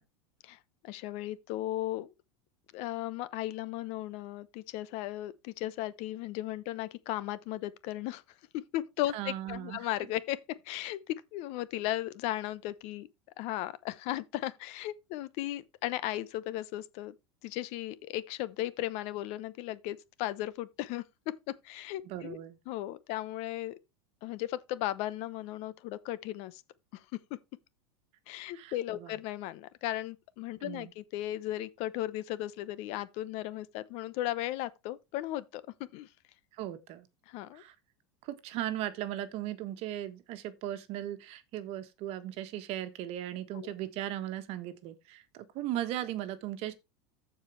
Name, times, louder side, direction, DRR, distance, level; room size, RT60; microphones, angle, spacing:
voice 1, 0.8-2.1 2.7-8.2 8.7-10.4 10.6-13.1 13.4-17.1 17.4-21.0 21.6-22.4 22.7-23.7 24.2-26.6 26.9-27.0 27.3-27.4 28.3-36.1 37.3-37.6 43.5-43.7, left 15 dB, 55° left, 0.9 m, -36 dB
voice 2, 9.1-9.9 22.0-22.6 28.5-29.2 30.6-30.9 36.5-37.1 37.5-37.7 38.2-46.7, right 12 dB, 50° right, 1.5 m, -37 dB
14.5 x 4.8 x 3.2 m
supercardioid pair, 120°, 13 cm